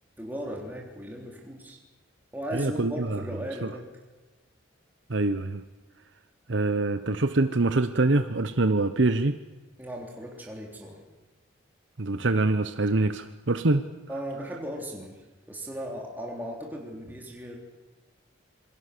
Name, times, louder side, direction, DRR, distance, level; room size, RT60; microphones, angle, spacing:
voice 1, 0.2-1.8 2.3-3.9 9.8-11.0 14.1-17.6, equal, 10° right, 0 dB, 3.4 m, -37 dB
voice 2, 2.5-3.2 3.6-3.7 5.1-5.6 6.5-9.4 12.0-13.9, right 2 dB, 70° right, 10 dB, 1.0 m, -25 dB
27.0 x 22.5 x 6.8 m, 1.2 s
head